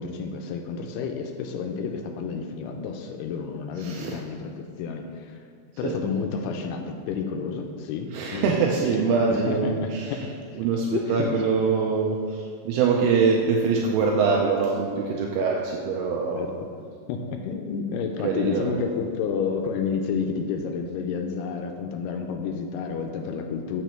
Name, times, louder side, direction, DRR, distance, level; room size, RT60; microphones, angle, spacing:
voice 1, 0.0-5.4 5.8-8.6 9.0-10.6 10.9-11.3 16.3-16.5 17.1-23.8, left 5 dB, 85° left, 4 dB, 2.4 m, -30 dB
voice 2, 3.8-4.2 5.8-6.0 8.1-10.3 10.6-16.4 18.2-18.9, right 5 dB, 85° right, 0 dB, 2.3 m, -24 dB
7.2 x 6.3 x 4.4 m, 2.2 s
omnidirectional pair, 4.9 m